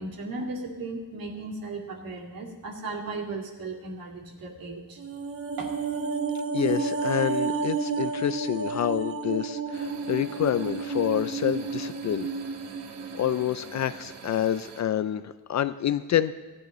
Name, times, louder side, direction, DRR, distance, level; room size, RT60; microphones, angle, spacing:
voice 1, 0.0-5.0 5.6-5.8, right 3 dB, 55° right, 0 dB, 2.5 m, -36 dB
sound 1, 5.0-13.4 13.7-13.9, right 4 dB, 30° right, 1.1 m, -31 dB
voice 2, 6.5-12.3 13.1-16.3, left 10 dB, 45° left, 12 dB, 0.4 m, -28 dB
sound 2, 9.7-14.8, right 6 dB, 80° right, 1.5 m, -45 dB
18.0 x 11.5 x 3.1 m, 1.3 s
cardioid pair, 150°, 41 cm